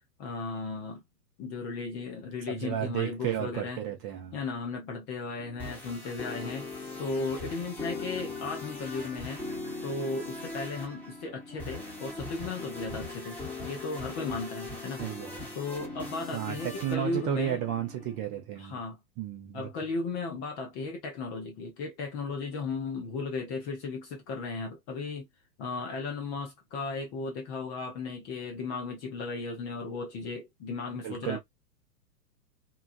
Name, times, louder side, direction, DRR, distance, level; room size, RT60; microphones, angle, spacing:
voice 1, 0.2-1.0 1.4-3.8 4.3-6.7 7.0-9.4 9.8-15.0 15.5-17.6 18.6-19.0 19.5-25.3 25.6-31.4, left 4 dB, 20° left, 0.5 m, -35 dB
voice 2, 2.5-4.4 15.0-15.4 16.3-18.8 19.2-19.7 31.0-31.4, right 10 dB, 25° right, 0.6 m, -33 dB
sound 1, 5.4-18.2, left 2 dB, 5° left, 1.0 m, -40 dB
2.9 x 2.2 x 2.4 m
figure-of-eight pair, 105°, 49 cm